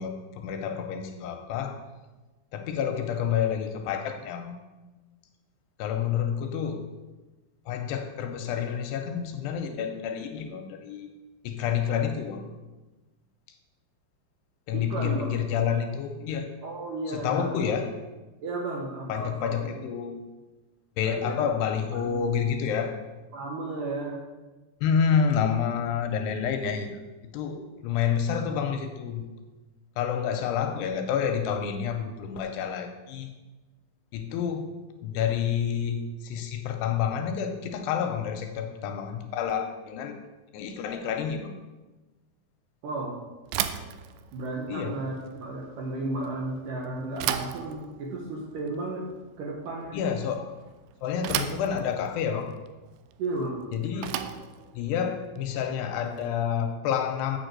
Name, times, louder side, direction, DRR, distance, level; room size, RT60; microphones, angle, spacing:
voice 1, 0.0-1.8 2.5-4.6 5.8-6.8 7.7-11.1 11.4-12.4 14.7-16.5 17.1-17.9 19.1-20.2 21.0-23.0 24.8-27.0 27.3-29.2 30.0-33.3 34.1-34.7 35.0-40.2 40.5-41.5 44.7-45.0 49.9-50.5 51.0-52.5 53.7-54.1 54.7-57.4, left 7 dB, 85° left, 5 dB, 2.5 m, -29 dB
voice 2, 14.7-15.4 16.6-17.5 18.4-19.8 21.0-21.3 21.9-22.2 23.3-24.2 42.8-43.2 44.3-49.1 49.4-50.0 53.2-53.6, right 2 dB, 70° right, -1 dB, 2.1 m, -33 dB
Bicycle / Thump thud, 43.4-56.6, right 10 dB, 85° right, 2.2 m, -37 dB
7.2 x 6.6 x 7.7 m, 1.2 s
omnidirectional pair, 5.1 m